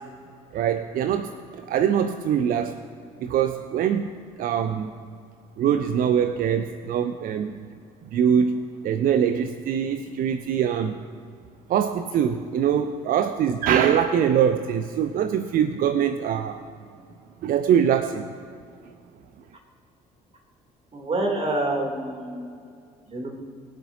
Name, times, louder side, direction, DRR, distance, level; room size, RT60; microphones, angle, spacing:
voice 1, 0.5-2.8 3.2-4.1 4.4-4.9 5.6-7.7 8.1-11.0 11.7-16.6 17.4-18.3, right 8 dB, 45° right, 10 dB, 0.6 m, -23 dB
voice 2, 20.9-22.5 23.1-23.3, right 1 dB, 30° right, 1 dB, 3.0 m, -27 dB
22.0 x 8.0 x 2.8 m, 2.3 s
figure-of-eight pair, 50°, 20 cm